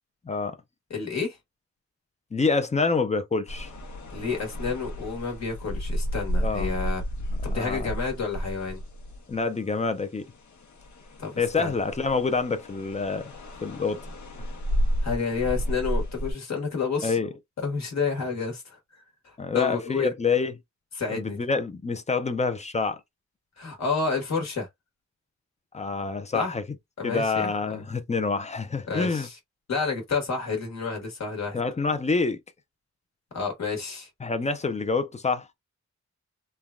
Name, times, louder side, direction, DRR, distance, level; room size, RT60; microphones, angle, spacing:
voice 1, 0.2-0.6 2.3-3.7 6.4-6.7 7.5-7.9 9.3-10.3 11.4-13.3 13.6-14.0 17.0-17.3 19.4-20.6 21.1-23.0 25.7-26.6 27.0-29.3 31.5-32.4 34.2-35.5, left 4 dB, 25° left, 0.4 m, -27 dB
voice 2, 0.9-1.4 4.1-7.0 7.4-8.8 11.2-11.7 15.0-17.2 17.6-18.8 19.2-20.1 20.9-21.4 23.6-24.7 26.3-26.5 27.0-27.8 28.9-29.3 29.7-31.6 33.3-34.1, left 5 dB, 65° left, 1.2 m, -30 dB
sound 1, 3.5-9.6 10.1-16.3, equal, 85° left, 0.9 m, -32 dB
3.2 x 2.2 x 2.4 m
wide cardioid pair, 145°, 29 cm